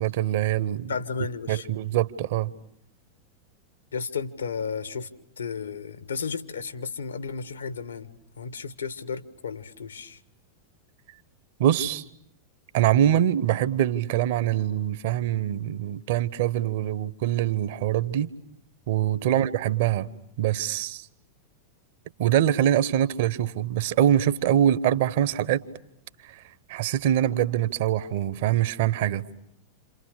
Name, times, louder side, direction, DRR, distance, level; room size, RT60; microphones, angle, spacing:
voice 1, 0.0-0.9 1.5-2.5 11.6-12.0 12.7-18.3 18.9-20.1 20.4-21.1 22.2-25.6 26.2-26.4 26.7-29.2, right 11 dB, 55° right, 1.2 m, -24 dB
voice 2, 0.9-1.7 3.9-5.1 5.4-10.2 19.2-19.5, left 5 dB, 70° left, 1.6 m, -33 dB
29.5 x 28.0 x 6.7 m
figure-of-eight pair, 90°, 0 cm